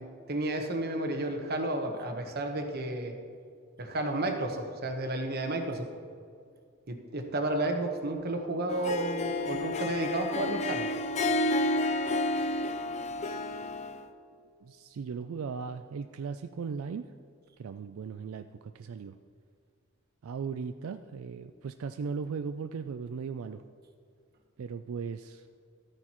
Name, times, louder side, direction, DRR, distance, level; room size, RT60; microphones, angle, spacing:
voice 1, 0.0-3.1 3.8-5.9 6.9-10.9, right 1 dB, 50° right, 4 dB, 1.1 m, -32 dB
Harp, 8.7-14.0, left 2 dB, 35° left, 0.5 m, -30 dB
voice 2, 14.6-17.1 17.6-19.2 20.2-23.6 24.6-25.5, right 5 dB, 85° right, 9 dB, 0.4 m, -37 dB
13.0 x 9.7 x 3.0 m, 2.2 s
head